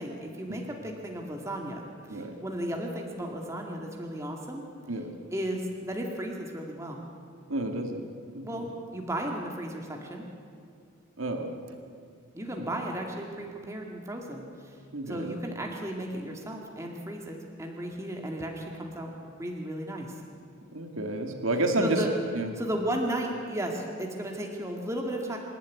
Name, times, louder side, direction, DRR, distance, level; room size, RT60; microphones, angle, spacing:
voice 1, 0.0-4.6 5.3-7.0 8.4-10.3 12.3-14.8 15.1-20.1 21.8-22.1 22.6-25.4, right 1 dB, 15° right, 0 dB, 2.0 m, -34 dB
voice 2, 7.5-8.0 8.3-8.5 11.2-11.8 14.9-15.3 20.7-22.0 22.3-22.5, right 2 dB, 75° right, 4 dB, 2.1 m, -30 dB
26.0 x 12.0 x 9.6 m, 2.3 s
head